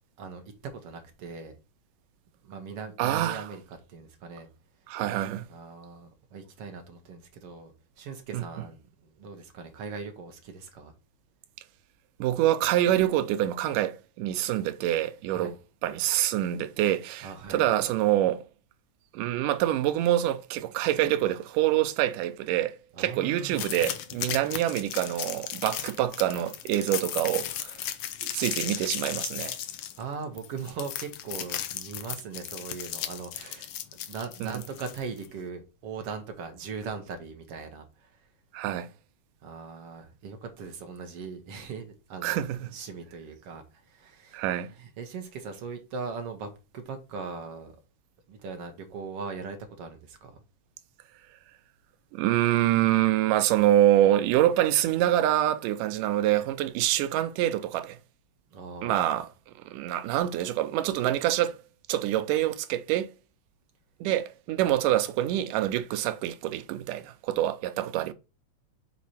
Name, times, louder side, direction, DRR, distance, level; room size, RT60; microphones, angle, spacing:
voice 1, 0.2-1.6 2.4-4.5 5.5-10.9 15.3-15.5 17.2-17.6 22.9-23.6 30.0-33.7 34.1-38.3 39.4-42.4 42.7-44.4 44.8-47.7 48.3-50.4 58.5-59.2, right 5 dB, 60° right, 1.6 m, -40 dB
voice 2, 3.0-3.4 4.9-5.5 8.3-8.4 12.2-15.5 15.8-18.4 19.1-27.8 28.2-29.6 34.4-34.6 38.5-38.9 42.2-42.7 44.3-44.7 52.1-58.0 58.8-59.3 59.7-61.6 61.9-63.1 64.0-68.1, right 13 dB, 90° right, 2.3 m, -26 dB
sound 1, 23.5-35.3, left 11 dB, 85° left, 1.3 m, -35 dB
6.3 x 4.2 x 4.2 m
omnidirectional pair, 3.7 m